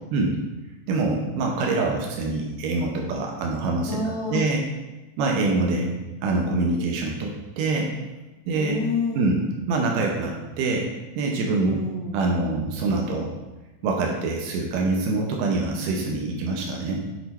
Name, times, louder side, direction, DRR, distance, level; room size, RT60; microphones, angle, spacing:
voice 1, 0.9-4.0 4.3-4.6 5.2-5.9 6.2-7.9 8.5-8.8 9.1-9.4 9.7-10.9 11.2-11.8 12.1-13.3 13.8-17.0, right 3 dB, 85° right, 0 dB, 2.5 m, -25 dB
voice 2, 3.8-4.4 8.6-9.4 11.6-12.2 15.4-15.6, left 4 dB, 45° left, -6 dB, 1.4 m, -29 dB
8.9 x 4.2 x 4.5 m, 1.1 s
omnidirectional pair, 3.8 m